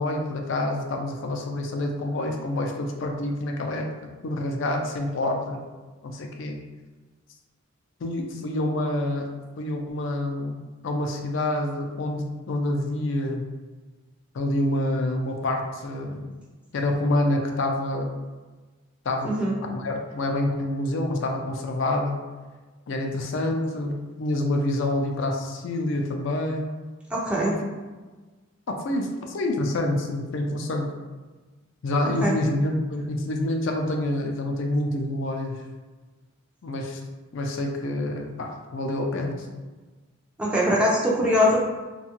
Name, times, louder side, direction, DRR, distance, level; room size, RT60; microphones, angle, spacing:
voice 1, 0.0-5.6 6.0-6.6 8.0-9.3 9.6-13.5 14.3-16.3 16.7-18.1 19.1-19.3 19.6-22.2 22.9-26.7 27.4-27.5 28.7-30.9 31.8-35.6 36.6-37.0 37.3-39.5, left 1 dB, 65° left, 2 dB, 0.4 m, -27 dB
voice 2, 19.2-19.6 27.1-27.5 32.2-32.4 40.4-41.7, left 1 dB, 5° right, -4 dB, 0.4 m, -22 dB
2.7 x 2.3 x 2.8 m, 1.3 s
head